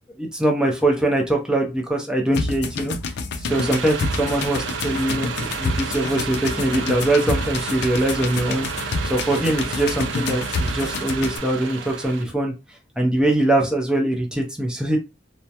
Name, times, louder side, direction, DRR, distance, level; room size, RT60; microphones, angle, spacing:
voice 1, 0.2-3.0 3.4-12.5 13.0-15.0, right 1 dB, 5° right, 0 dB, 0.6 m, -22 dB
sound 1, 2.3-11.4, left 3 dB, 60° left, 0.4 m, -28 dB
sound 2, 3.5-12.2, right 5 dB, 70° right, 0.4 m, -31 dB
2.2 x 2.0 x 2.7 m, 0.25 s
head